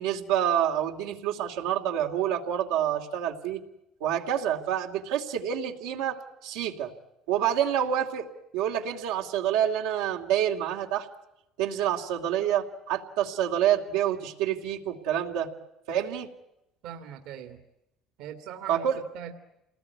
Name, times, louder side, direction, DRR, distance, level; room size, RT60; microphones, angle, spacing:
voice 1, 0.0-3.6 4.0-6.9 7.3-8.3 8.5-11.1 11.6-15.5 15.9-16.3 18.7-19.0, right 10 dB, 90° right, 1 dB, 2.7 m, -27 dB
voice 2, 16.8-17.6 18.2-19.3, right 9 dB, 75° right, 5 dB, 2.3 m, -41 dB
28.0 x 19.5 x 9.5 m, 0.89 s
supercardioid pair, 95°, 0 cm